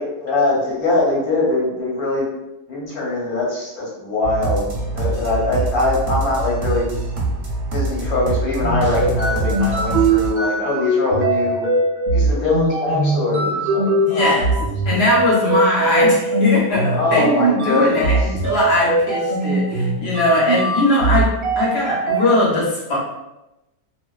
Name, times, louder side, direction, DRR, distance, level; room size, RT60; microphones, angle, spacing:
voice 1, 0.0-2.3 2.7-6.9 7.7-11.7 12.1-14.3 14.9-15.0 16.9-18.3, left 2 dB, 90° left, -4 dB, 1.3 m, -22 dB
sound 1, 4.2-10.3, right 2 dB, 55° right, 0.8 m, -24 dB
sound 2, 8.5-22.2, right 2 dB, 75° right, 0.4 m, -20 dB
voice 2, 14.0-14.5 14.8-23.0, left 1 dB, 55° left, -5 dB, 0.9 m, -20 dB
2.4 x 2.2 x 2.3 m, 0.95 s
omnidirectional pair, 1.5 m